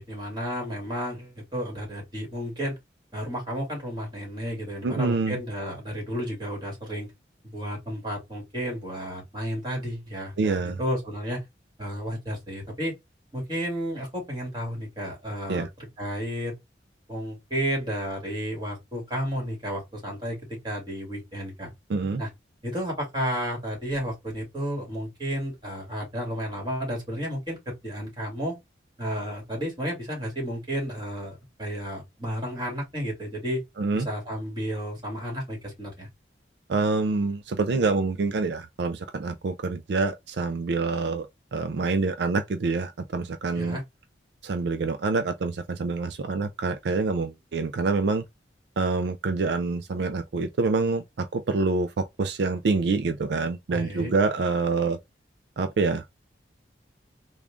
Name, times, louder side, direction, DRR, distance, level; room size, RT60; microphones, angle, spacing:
voice 1, 0.0-2.8 3.1-7.1 7.4-11.4 11.8-12.9 13.3-16.6 17.1-21.7 22.2-22.3 22.6-28.6 29.0-33.6 33.9-36.1 43.5-43.8 53.7-54.1, equal, 25° right, 2.0 m, -32 dB
voice 2, 4.8-5.4 10.4-10.8 15.5-15.7 21.9-22.2 33.8-34.1 36.7-43.8 44.4-48.2 48.8-55.0 55.6-56.0, right 4 dB, 75° right, 0.4 m, -26 dB
3.7 x 2.3 x 3.4 m
head